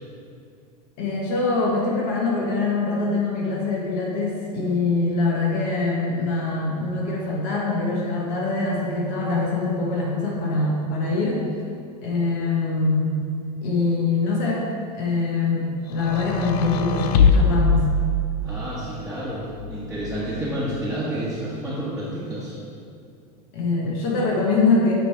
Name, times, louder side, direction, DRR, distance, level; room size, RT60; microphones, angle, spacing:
voice 1, 1.0-11.4 12.0-13.2 13.6-14.6 15.0-17.9 23.5-24.9, left 3 dB, 55° left, -3 dB, 1.3 m, -23 dB
sound 1, 16.0-18.7 19.6-20.5, left 4 dB, 80° left, 0.5 m, -22 dB
voice 2, 18.4-22.6, right 1 dB, 5° right, -10 dB, 1.3 m, -30 dB
8.6 x 3.3 x 4.6 m, 2.4 s
supercardioid pair, 125°, 20 cm